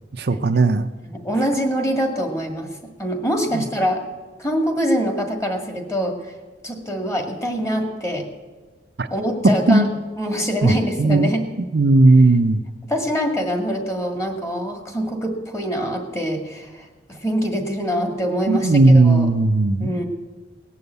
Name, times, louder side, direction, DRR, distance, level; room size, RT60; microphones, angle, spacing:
voice 1, 0.2-0.9 3.5-3.6 9.0-9.1 9.7-9.9 10.6-10.7 11.0-11.3 11.7-12.6 18.5-19.9, right 2 dB, 60° right, 8 dB, 0.6 m, -16 dB
voice 2, 1.0-4.0 4.4-6.3 6.6-8.3 9.1-9.9 10.2-11.5 12.9-19.3 19.8-20.0, equal, 15° left, 3 dB, 1.8 m, -24 dB
18.5 x 7.0 x 8.0 m, 1.3 s
head